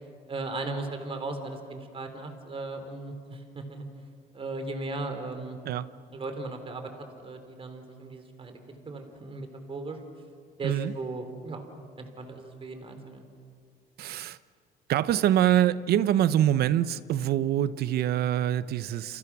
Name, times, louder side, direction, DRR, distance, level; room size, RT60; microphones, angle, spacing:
voice 1, 0.3-3.9 4.3-5.6 6.1-10.0 10.6-11.7 12.0-13.2, right 2 dB, 35° right, 7 dB, 3.6 m, -37 dB
voice 2, 10.6-10.9 14.0-14.4 14.9-19.2, right 11 dB, 70° right, 15 dB, 0.9 m, -25 dB
29.5 x 28.0 x 6.2 m, 2.1 s
cardioid pair, 110°, 17 cm